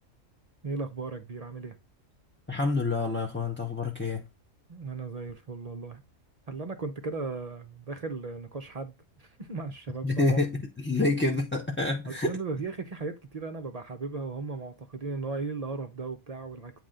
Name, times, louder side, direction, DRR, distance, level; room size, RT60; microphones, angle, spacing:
voice 1, 0.6-1.8 4.7-6.0 6.5-10.4 12.1-16.7, right 4 dB, 40° right, 0.5 m, -36 dB
voice 2, 2.5-4.3 10.0-12.4, left 3 dB, 15° left, 0.5 m, -27 dB
8.8 x 3.0 x 3.7 m
omnidirectional pair, 1.4 m